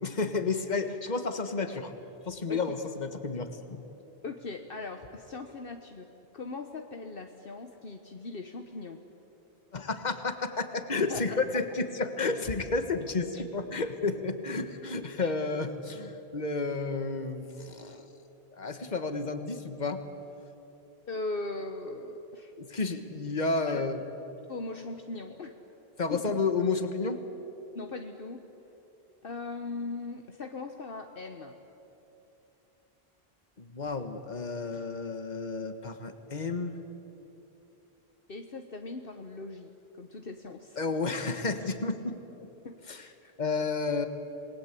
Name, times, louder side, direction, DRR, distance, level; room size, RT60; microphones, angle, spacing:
voice 1, 0.0-1.9 2.2-3.8 9.7-18.2 18.5-20.0 22.6-24.0 26.0-27.2 33.6-36.8 40.8-42.5 42.9-43.0 43.4-44.1, left 3 dB, 45° left, 8 dB, 1.6 m, -31 dB
voice 2, 4.2-6.1 6.3-9.0 11.1-11.6 13.3-13.4 15.2-15.3 21.1-22.9 23.7-23.9 24.5-25.5 26.1-26.4 27.7-28.4 29.2-31.5 38.3-40.8 42.6-43.3, left 3 dB, 60° left, 5 dB, 1.3 m, -39 dB
28.0 x 20.0 x 8.4 m, 3.0 s
omnidirectional pair, 1.1 m